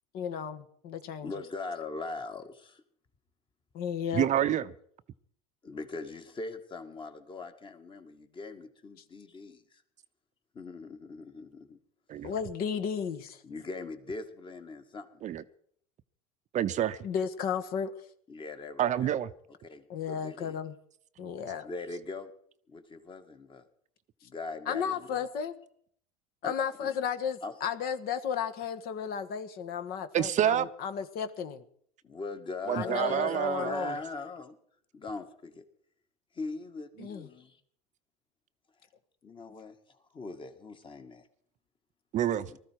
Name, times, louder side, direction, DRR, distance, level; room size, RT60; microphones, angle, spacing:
voice 1, 0.1-1.3 3.7-4.3 12.2-13.4 17.0-18.0 19.9-20.7 21.2-21.7 24.7-25.5 26.4-31.6 32.7-34.0 37.0-37.3, left 7 dB, 55° left, 1.5 m, -34 dB
voice 2, 1.2-2.8 5.6-9.8 10.5-11.8 13.4-15.2 18.3-19.1 19.6-20.6 21.6-22.3 22.7-23.7 24.2-25.3 26.4-26.5 26.8-26.9 27.4-27.5 32.0-34.6 34.9-35.6 36.3-37.6 39.2-41.2 42.5-42.6, left 3 dB, 25° left, 2.0 m, -40 dB
voice 3, 4.1-4.7 12.1-12.3 15.2-15.4 16.5-17.0 18.8-19.3 30.1-30.7 32.7-33.9 42.1-42.5, right 11 dB, 40° right, 0.7 m, -28 dB
19.5 x 13.5 x 4.7 m
hypercardioid pair, 90°, 19 cm